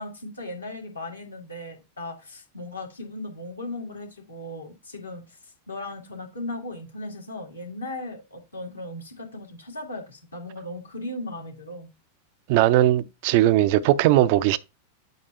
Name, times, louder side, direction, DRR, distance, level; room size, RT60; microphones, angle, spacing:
voice 1, 0.0-11.9, left 1 dB, 80° left, 1.9 m, -37 dB
voice 2, 12.5-14.6, right 14 dB, 50° right, 0.4 m, -19 dB
7.9 x 2.7 x 5.5 m
figure-of-eight pair, 90°, 0 cm